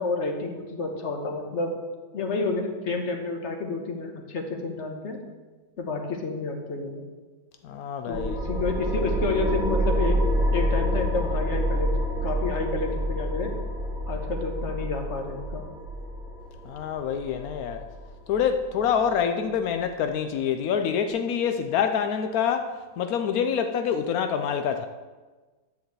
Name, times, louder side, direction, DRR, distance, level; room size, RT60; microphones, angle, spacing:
voice 1, 0.0-1.8 2.1-5.2 5.8-7.0 8.0-10.2 10.5-11.9 12.2-13.5 14.1-15.6, left 3 dB, 40° left, 1.3 m, -30 dB
voice 2, 7.6-8.4 16.6-17.8 18.3-24.9, left 7 dB, 80° left, 0.8 m, -26 dB
sound 1, 8.1-19.2, equal, ahead, 1.8 m, -28 dB
10.5 x 4.8 x 7.7 m
omnidirectional pair, 2.2 m